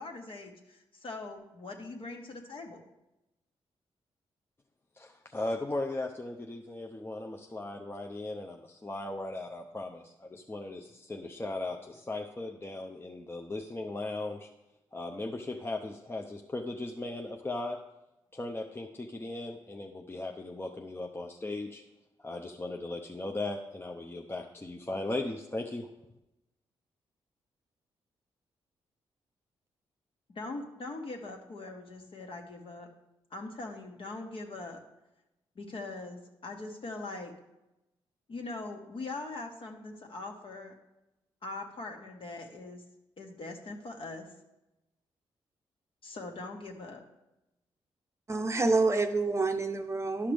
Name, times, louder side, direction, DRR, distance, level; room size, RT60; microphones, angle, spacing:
voice 1, 0.0-2.8 30.3-32.9 33.3-34.8 35.5-37.3 38.3-40.7 41.4-42.8 43.2-44.2 46.0-47.0, left 2 dB, 55° left, 2 dB, 1.4 m, -41 dB
voice 2, 5.0-14.5 14.9-17.8 18.3-21.8 22.2-25.9, left 2 dB, 20° left, 2 dB, 0.7 m, -37 dB
voice 3, 48.3-50.3, right 3 dB, 25° right, 6 dB, 0.7 m, -27 dB
11.0 x 5.8 x 3.4 m, 0.95 s
cardioid pair, 60°, 11 cm